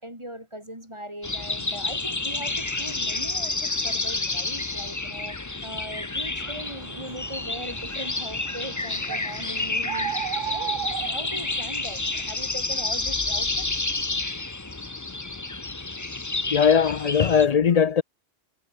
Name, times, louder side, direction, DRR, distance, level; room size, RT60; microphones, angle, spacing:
voice 1, 0.0-5.4 5.6-13.6, equal, 25° right, 8.0 m, -40 dB
sound 1, 1.2-17.5, left 3 dB, 15° left, 0.8 m, -30 dB
sound 2, 6.4-12.0, right 10 dB, 90° right, 1.2 m, -36 dB
voice 2, 16.5-18.0, left 7 dB, 45° left, 0.5 m, -19 dB
omnidirectional pair, 1.3 m